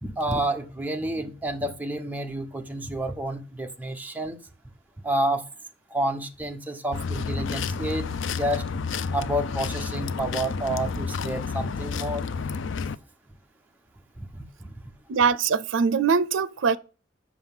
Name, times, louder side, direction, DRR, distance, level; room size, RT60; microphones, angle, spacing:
voice 1, 0.0-4.4 5.0-5.4 5.9-8.1 8.3-8.6 9.1-12.2 14.2-14.7, right 1 dB, 10° right, 0.9 m, -29 dB
sound 1, 6.9-13.0, left 5 dB, 75° left, 0.5 m, -30 dB
voice 2, 15.1-16.8, right 5 dB, 85° right, 0.5 m, -22 dB
7.7 x 6.2 x 7.3 m
head